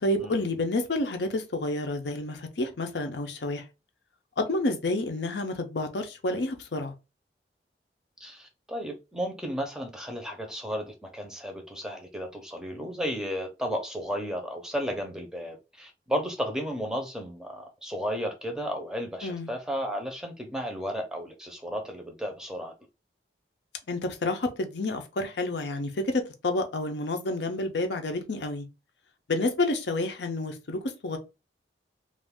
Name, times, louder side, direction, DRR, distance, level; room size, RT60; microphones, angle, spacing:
voice 1, 0.0-3.6 4.4-6.9 19.2-19.5 23.9-28.7 29.3-31.2, left 2 dB, 80° left, 0.6 m, -29 dB
voice 2, 8.2-22.7, equal, 5° right, 0.6 m, -33 dB
2.5 x 2.4 x 3.5 m
head